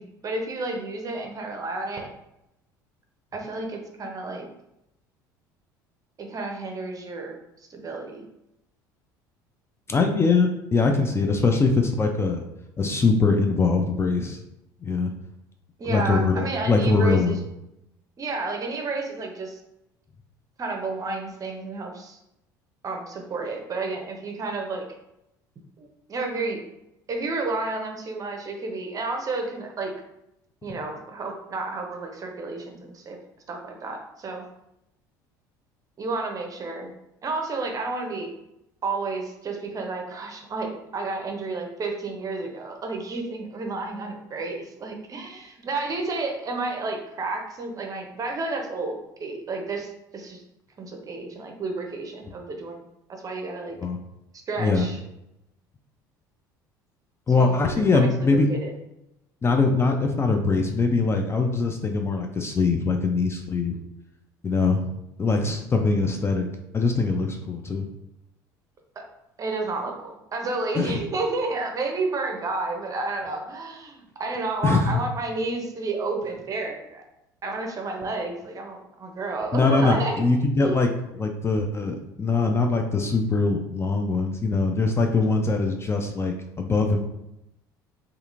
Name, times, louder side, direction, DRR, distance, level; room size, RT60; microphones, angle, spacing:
voice 1, 0.0-2.1 3.3-4.5 6.2-7.4 7.7-8.3 15.8-17.4 18.2-19.6 20.6-22.2 22.8-24.9 25.8-26.6 27.1-29.9 30.6-33.2 33.5-34.4 36.0-36.9 37.2-38.3 38.8-50.4 50.8-53.8 54.5-55.0 57.4-58.7 69.0-69.1 69.4-77.0 77.4-80.2 80.6-80.9, right 3 dB, 35° right, 2 dB, 0.6 m, -31 dB
voice 2, 9.9-12.4 12.8-14.4 14.8-15.1 15.8-17.4 53.8-54.0 54.6-54.9 57.3-58.5 59.4-63.8 64.4-64.9 65.2-66.5 66.7-67.9 70.7-71.0 74.6-74.9 79.5-87.0, left 3 dB, 25° left, 4 dB, 0.4 m, -22 dB
2.8 x 2.5 x 2.4 m, 0.86 s
hypercardioid pair, 70°, 10 cm